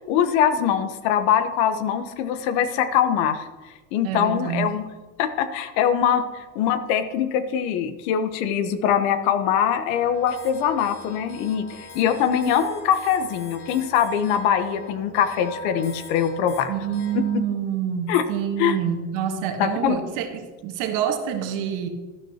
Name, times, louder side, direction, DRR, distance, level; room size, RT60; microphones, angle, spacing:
voice 1, 0.1-3.5 3.9-4.8 5.2-6.2 6.5-11.7 11.9-16.7 17.1-17.2 18.1-18.2 18.6-18.8 19.6-20.0, left 8 dB, 70° left, 10 dB, 1.0 m, -22 dB
voice 2, 4.0-4.8 16.7-21.9, right 8 dB, 65° right, 5 dB, 1.5 m, -27 dB
sound 1, 9.9-17.4, left 3 dB, 85° left, 2.7 m, -42 dB
12.5 x 12.0 x 2.9 m, 1.2 s
cardioid pair, 155°, 36 cm